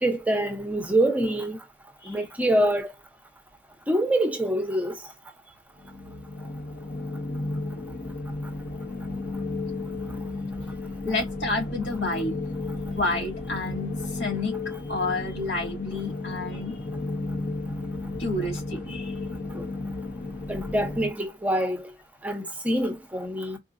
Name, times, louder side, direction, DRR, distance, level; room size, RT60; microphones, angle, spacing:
voice 1, 0.0-1.6 2.1-2.9 3.9-5.0 19.5-19.6 20.5-21.8 22.2-23.6, right 1 dB, 10° right, 0.8 m, -25 dB
sound 1, 5.8-21.1, left 2 dB, 55° left, 0.8 m, -33 dB
voice 2, 11.0-12.4 13.0-14.6 14.9-16.8 18.2-19.1, left 2 dB, 85° left, 2.8 m, -30 dB
4.7 x 2.3 x 2.5 m
head